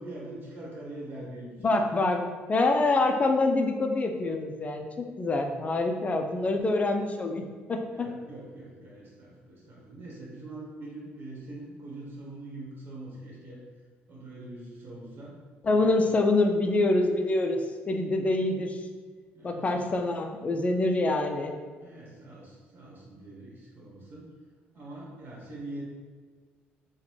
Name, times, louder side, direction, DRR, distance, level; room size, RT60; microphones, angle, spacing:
voice 1, 0.0-1.8 7.9-13.6 14.1-15.3 15.7-16.0 19.3-19.7 21.8-24.3 24.7-25.8, right 2 dB, 50° right, -4 dB, 1.3 m, -43 dB
voice 2, 1.6-2.2 2.5-7.4 7.7-8.1 15.6-18.8 19.4-21.5, left 2 dB, 30° left, 4 dB, 0.4 m, -26 dB
3.8 x 2.2 x 3.1 m, 1.5 s
supercardioid pair, 75°, 5 cm